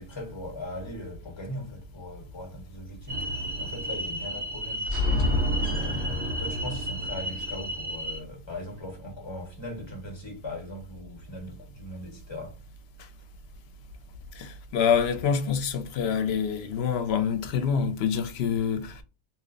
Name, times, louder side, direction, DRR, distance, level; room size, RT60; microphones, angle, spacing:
voice 1, 0.0-12.6, left 1 dB, 25° left, 1.0 m, -40 dB
sound 1, 3.1-8.2, left 1 dB, 90° right, 1.4 m, -29 dB
voice 2, 14.3-19.0, left 7 dB, 75° left, 0.8 m, -26 dB
2.8 x 2.0 x 3.8 m
omnidirectional pair, 1.1 m